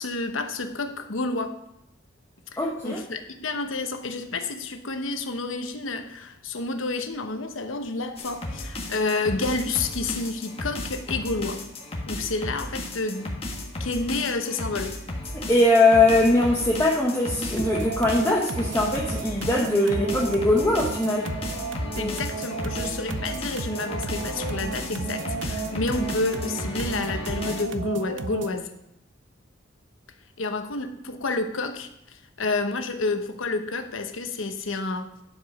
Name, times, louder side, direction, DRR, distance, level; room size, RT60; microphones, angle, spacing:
voice 1, 0.0-1.6 2.5-11.6 12.1-13.4 13.8-14.9 22.0-28.7 30.4-35.2, left 3 dB, 85° left, 7 dB, 0.9 m, -29 dB
voice 2, 2.6-3.0 15.5-21.3 21.9-22.1, left 2 dB, 15° left, -3 dB, 0.9 m, -21 dB
sound 1, 8.2-27.6, left 1 dB, 30° left, 1.6 m, -34 dB
sound 2, 17.6-28.6, right 4 dB, 65° right, 0.6 m, -34 dB
11.0 x 5.0 x 5.2 m, 0.82 s
head